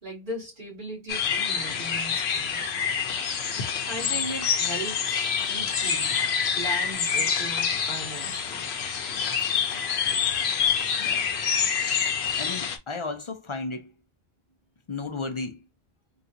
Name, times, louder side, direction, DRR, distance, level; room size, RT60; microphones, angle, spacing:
voice 1, 0.0-2.7 3.9-6.2 6.5-8.7, right 1 dB, 50° right, 2.1 m, -37 dB
sound 1, 1.1-12.8, left 7 dB, 80° left, 0.9 m, -27 dB
voice 2, 12.4-13.9 14.9-15.7, left 3 dB, 45° left, 0.4 m, -34 dB
3.7 x 2.4 x 2.7 m
omnidirectional pair, 1.0 m